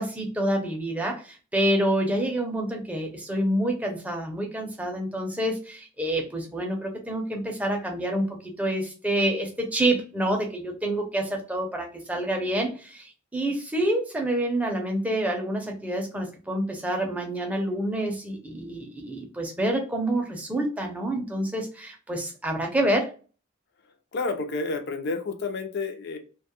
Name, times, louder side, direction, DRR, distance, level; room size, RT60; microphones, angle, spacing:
voice 1, 0.0-23.1, right 1 dB, 5° right, 1 dB, 0.5 m, -27 dB
voice 2, 24.1-26.2, left 3 dB, 55° left, 7 dB, 0.4 m, -30 dB
2.2 x 2.0 x 2.8 m, 0.36 s
head